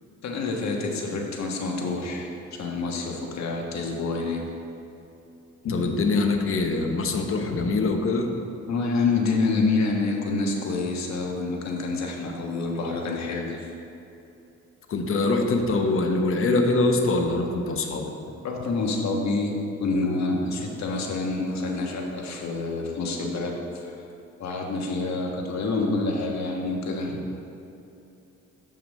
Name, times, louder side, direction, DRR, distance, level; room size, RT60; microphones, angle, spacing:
voice 1, 0.2-2.3 2.6-4.4 5.6-5.8 8.7-13.7 18.4-23.9 24.4-27.2, left 3 dB, 65° left, 0 dB, 1.4 m, -27 dB
voice 2, 5.7-8.3 14.9-18.1, left 3 dB, 45° left, 3 dB, 1.0 m, -23 dB
7.0 x 5.8 x 6.3 m, 2.8 s
cardioid pair, 90°, 30 cm